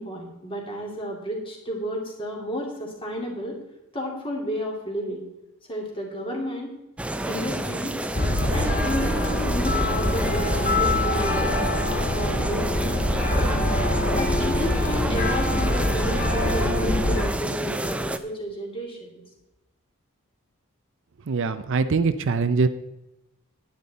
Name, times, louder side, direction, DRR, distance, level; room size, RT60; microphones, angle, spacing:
voice 1, 0.0-3.6 3.9-5.2 5.7-6.7 7.2-8.0 8.5-11.7 12.1-12.9 13.8-19.2, equal, 25° left, -1 dB, 2.6 m, -32 dB
sound 1, 7.0-18.2, right 1 dB, 5° right, 0.4 m, -30 dB
sound 2, 8.1-17.2, left 1 dB, 40° left, 1.9 m, -24 dB
voice 2, 21.3-22.7, right 4 dB, 55° right, 11 dB, 0.5 m, -22 dB
10.5 x 10.5 x 4.1 m, 0.94 s
head